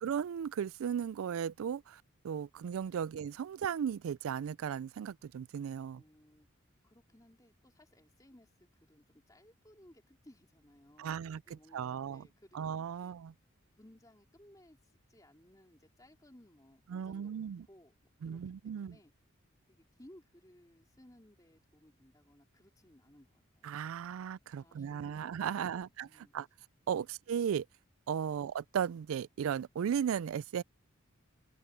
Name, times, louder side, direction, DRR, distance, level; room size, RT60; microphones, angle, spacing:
voice 1, 0.0-6.0 11.0-12.3 12.5-13.3 16.9-17.7 18.2-19.0 23.6-26.5 26.9-27.7 28.1-30.6, right 8 dB, 80° right, 0.3 m, -36 dB
voice 2, 6.0-6.5 6.8-13.1 13.8-17.9 18.2-19.1 19.7-23.7 24.6-26.3 26.9-27.1 28.3-28.4, left 1 dB, 15° left, 3.1 m, -61 dB
open air
head